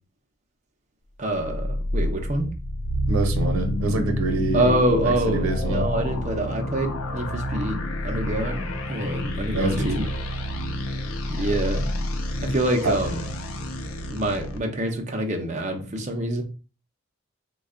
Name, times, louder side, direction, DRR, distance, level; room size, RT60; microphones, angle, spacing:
voice 1, 1.2-2.5 4.5-10.1 11.3-11.9 12.4-13.2 14.1-16.4, right 1 dB, 35° right, 0.6 m, -26 dB
sound 1, 1.3-14.6, left 1 dB, 85° left, 0.6 m, -28 dB
voice 2, 3.1-4.7 5.0-5.9 9.5-10.1 12.8-12.9, right 2 dB, 90° right, 0.7 m, -26 dB
3.2 x 2.3 x 3.7 m
head